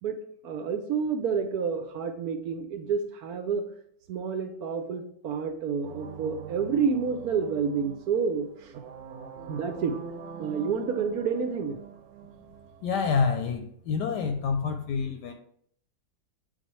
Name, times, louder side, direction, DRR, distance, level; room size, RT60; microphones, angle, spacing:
voice 1, 0.4-3.6 4.1-8.8 9.5-10.0 10.4-11.8, right 6 dB, 70° right, 7 dB, 0.9 m, -29 dB
sound 1, 5.8-13.5, right 6 dB, 85° right, 1.4 m, -44 dB
voice 2, 12.8-15.3, left 5 dB, 75° left, 6 dB, 1.1 m, -27 dB
7.9 x 4.0 x 3.1 m, 0.65 s
omnidirectional pair, 2.0 m